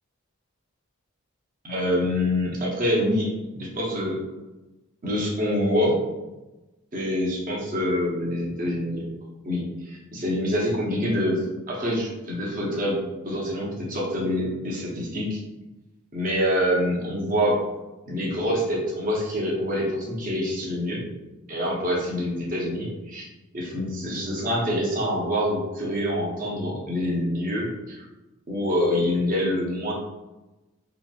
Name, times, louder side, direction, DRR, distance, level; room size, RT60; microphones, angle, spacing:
voice 1, 1.6-3.3 3.5-4.2 5.0-6.0 6.9-9.0 9.4-13.0 13.3-15.4 16.1-17.6 18.1-21.0 21.5-23.2 23.5-28.0 28.5-29.9, equal, 40° right, -4 dB, 0.7 m, -26 dB
2.9 x 2.6 x 2.3 m, 1.1 s
head